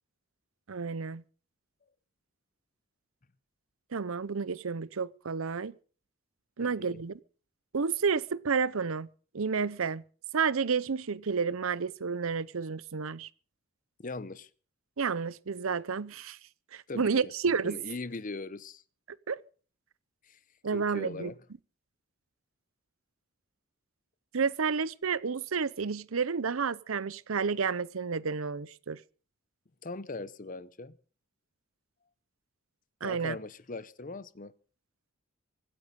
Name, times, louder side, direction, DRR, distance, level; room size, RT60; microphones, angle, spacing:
voice 1, 0.7-1.2 3.9-5.7 6.6-7.2 7.7-9.1 9.3-10.0 10.3-13.3 15.0-16.4 16.7-17.8 19.3-19.4 20.6-21.3 24.3-29.0 33.0-33.4, right 5 dB, 75° right, 0.7 m, -30 dB
voice 2, 6.6-7.0 14.0-14.5 16.9-17.1 17.6-18.8 20.2-20.4 20.7-21.3 29.8-30.9 33.0-34.5, left 3 dB, 40° left, 0.8 m, -40 dB
24.5 x 8.9 x 5.3 m
head